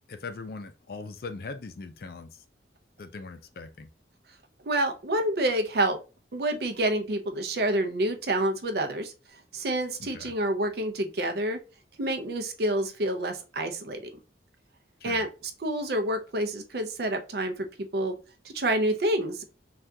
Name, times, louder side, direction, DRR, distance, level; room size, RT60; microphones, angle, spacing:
voice 1, 0.1-2.4 3.0-3.9 10.0-10.3 15.0-15.2, left 3 dB, 55° left, 0.4 m, -40 dB
voice 2, 4.6-6.0 6.3-9.1 9.5-11.6 12.0-14.0 15.0-15.3 15.6-18.1 18.4-19.4, right 1 dB, 55° right, 0.5 m, -28 dB
3.4 x 2.3 x 2.6 m
head